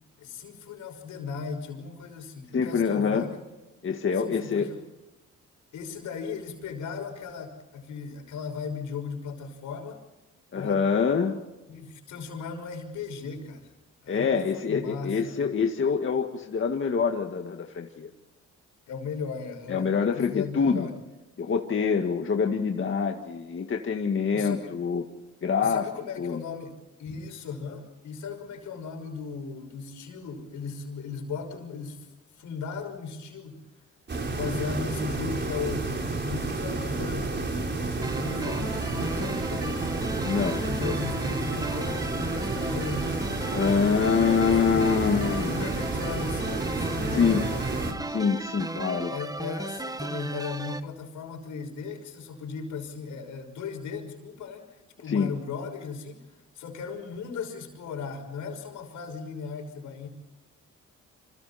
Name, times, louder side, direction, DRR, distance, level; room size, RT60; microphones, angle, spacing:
voice 1, 0.2-3.4 4.2-4.8 5.7-10.0 10.5-10.8 11.7-13.7 14.0-15.5 18.9-20.9 24.3-24.8 25.6-32.1 32.4-33.7 34.3-37.4 38.1-39.9 40.6-43.2 44.4-44.8 45.2-47.9 49.1-60.1, left 5 dB, 75° left, 4 dB, 5.9 m, -37 dB
voice 2, 2.5-3.3 3.8-4.7 10.5-11.4 14.1-18.1 19.7-20.9 21.4-25.0 25.4-25.9 26.2-26.4 40.2-40.6 43.5-45.6 47.1-47.4 48.1-49.1 55.1-55.3, left 6 dB, 40° left, 3 dB, 2.0 m, -25 dB
sound 1, 34.1-47.9, right 3 dB, 35° right, 4.4 m, -30 dB
sound 2, 38.0-50.8, right 2 dB, 10° right, 1.1 m, -35 dB
28.5 x 26.5 x 4.4 m, 1.1 s
cardioid pair, 90°, 30 cm